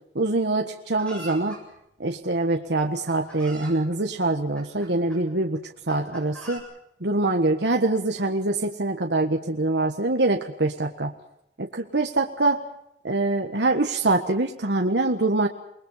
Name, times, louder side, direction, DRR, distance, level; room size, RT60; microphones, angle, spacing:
voice 1, 0.1-1.6 2.0-6.6 7.0-11.1 11.6-12.6 13.0-15.5, right 2 dB, 80° right, 3 dB, 1.6 m, -24 dB
Chicken rooster, 1.0-1.6 2.5-2.6 3.1-3.8 4.6-5.2 5.9-6.6, right 1 dB, 5° left, 7.8 m, -42 dB
28.5 x 21.0 x 5.7 m, 0.77 s
head